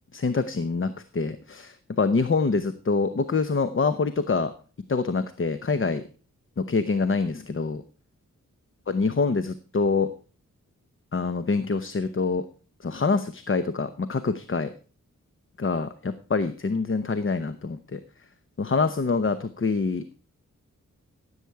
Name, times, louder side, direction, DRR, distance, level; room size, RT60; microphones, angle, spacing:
voice 1, 0.1-4.5 4.9-6.0 6.6-7.8 8.9-10.1 11.1-12.5 12.8-14.7 15.6-18.0 18.6-20.2, left 4 dB, 40° left, 11 dB, 0.8 m, -25 dB
16.0 x 8.1 x 4.7 m, 0.40 s
wide cardioid pair, 80°, 32 cm